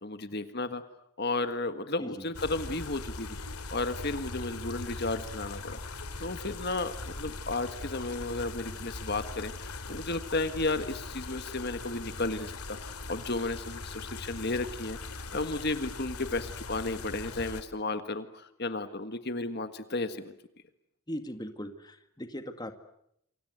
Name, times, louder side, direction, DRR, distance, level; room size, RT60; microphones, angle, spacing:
voice 1, 0.0-0.8 1.2-3.4 3.7-20.3, left 2 dB, 45° left, 9 dB, 1.6 m, -33 dB
sound 1, 2.3-17.6, left 3 dB, 85° left, 3.0 m, -40 dB
voice 2, 21.1-22.7, equal, 20° left, 8 dB, 2.0 m, -39 dB
29.0 x 25.0 x 8.1 m, 0.75 s
head